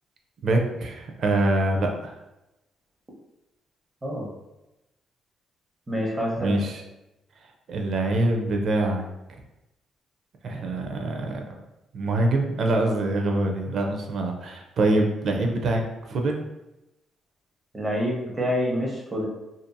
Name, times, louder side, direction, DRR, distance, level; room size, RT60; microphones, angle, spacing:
voice 1, 0.4-2.1 6.4-6.8 7.7-9.1 10.4-11.4 11.9-16.5, right 2 dB, 60° right, 3 dB, 0.5 m, -24 dB
voice 2, 4.0-4.3 5.9-6.6 17.7-19.3, equal, 20° right, -2 dB, 0.8 m, -27 dB
2.6 x 2.6 x 2.2 m, 0.95 s
cardioid pair, 90°, 0 cm